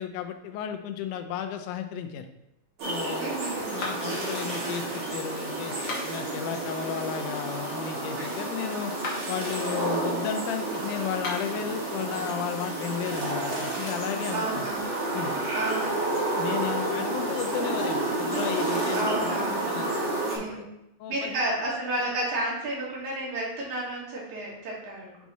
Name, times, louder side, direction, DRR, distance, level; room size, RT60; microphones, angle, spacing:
voice 1, 0.0-2.3 2.9-3.4 3.7-5.8 6.0-8.9 9.3-14.7 15.1-15.3 16.4-19.4 19.7-19.9 20.4-20.6 21.0-21.4, left 8 dB, 85° left, 7 dB, 2.2 m, -34 dB
sound 1, 2.8-20.4, right 2 dB, 50° right, 2.2 m, -30 dB
voice 2, 3.2-3.7 14.3-14.9 15.5-16.1 18.9-19.6 20.2-20.7 21.1-25.2, right 1 dB, 70° right, -4 dB, 3.0 m, -31 dB
sound 2, 3.8-4.3 5.7-6.3 8.9-9.4 11.1-11.6, left 2 dB, 55° left, 1.4 m, -36 dB
7.2 x 3.6 x 4.1 m, 0.87 s
omnidirectional pair, 3.5 m